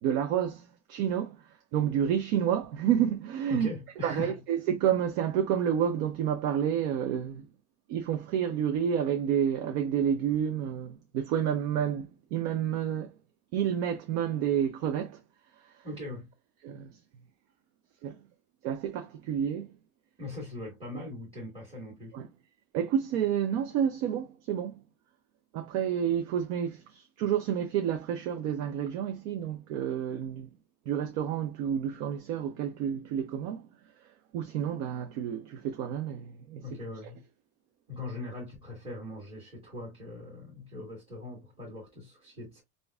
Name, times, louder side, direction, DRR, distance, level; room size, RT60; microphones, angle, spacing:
voice 1, 0.0-3.7 4.0-7.5 7.9-13.2 13.5-15.2 15.6-15.9 16.6-17.0 18.0-18.2 18.6-19.7 22.1-22.3 22.7-24.8 25.5-30.5 30.9-33.7 34.0-36.8, right 9 dB, 50° right, 0.6 m, -30 dB
voice 2, 3.5-4.3 15.8-16.3 20.2-22.2 36.6-37.2 37.9-42.6, left 2 dB, 10° right, 1.5 m, -40 dB
5.0 x 2.7 x 2.3 m
cardioid pair, 175°, 48 cm